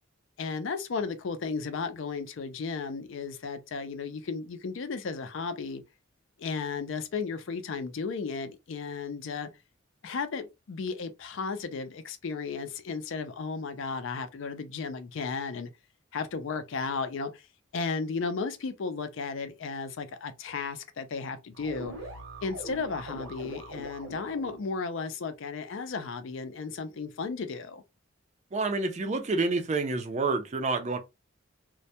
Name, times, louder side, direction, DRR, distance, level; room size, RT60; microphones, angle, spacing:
voice 1, 0.4-5.8 6.4-9.5 10.0-15.7 16.1-17.5 17.7-21.9 22.4-27.8, left 4 dB, 60° left, 0.4 m, -34 dB
sound 1, 21.5-24.7, right 1 dB, 55° right, 0.8 m, -42 dB
voice 2, 28.5-31.0, right 3 dB, 35° right, 0.4 m, -28 dB
2.2 x 2.1 x 2.7 m
head